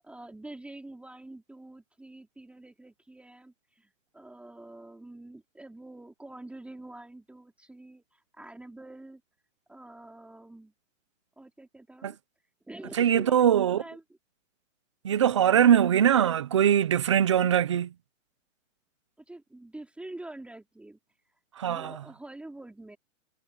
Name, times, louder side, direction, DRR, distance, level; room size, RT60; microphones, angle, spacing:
voice 1, 0.0-9.2 9.7-10.7 11.4-12.2 12.7-14.0 19.3-21.0 21.6-23.0, right 2 dB, 5° right, 2.9 m, -46 dB
voice 2, 13.0-13.8 15.0-17.9 21.6-21.9, right 9 dB, 25° right, 0.3 m, -22 dB
hypercardioid pair, 155°, 39 cm